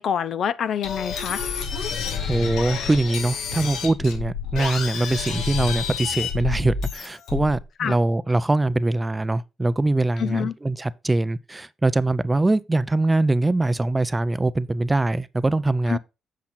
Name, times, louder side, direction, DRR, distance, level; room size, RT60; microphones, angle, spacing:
voice 1, 0.0-1.4 7.8-8.0 10.2-10.5 15.9-16.0, left 8 dB, 65° left, 0.7 m, -26 dB
sound 1, 0.8-7.6, left 6 dB, 85° left, 2.0 m, -29 dB
voice 2, 2.3-16.0, right 2 dB, 15° right, 0.5 m, -23 dB
8.5 x 5.9 x 4.2 m
cardioid pair, 90°, 0 cm